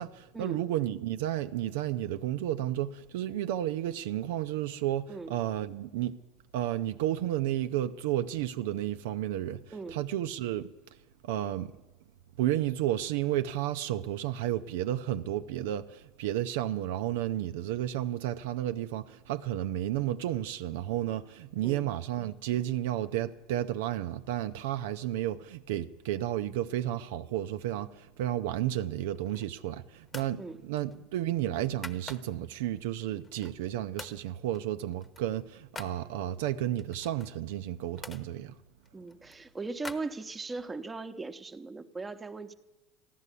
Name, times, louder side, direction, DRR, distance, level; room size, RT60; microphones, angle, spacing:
voice 1, 0.0-6.2 6.5-10.7 11.2-11.7 12.4-38.5, right 12 dB, 80° right, 0.5 m, -32 dB
sound 1, 29.2-29.6 30.1-30.4 30.8-32.5 33.0-33.7 34.0-34.2 34.5-36.0 36.8-38.3 38.8-40.7, left 3 dB, 20° left, 1.0 m, -47 dB
voice 2, 38.9-42.5, right 3 dB, 15° right, 0.9 m, -39 dB
14.5 x 11.0 x 8.3 m
supercardioid pair, 100°, 0 cm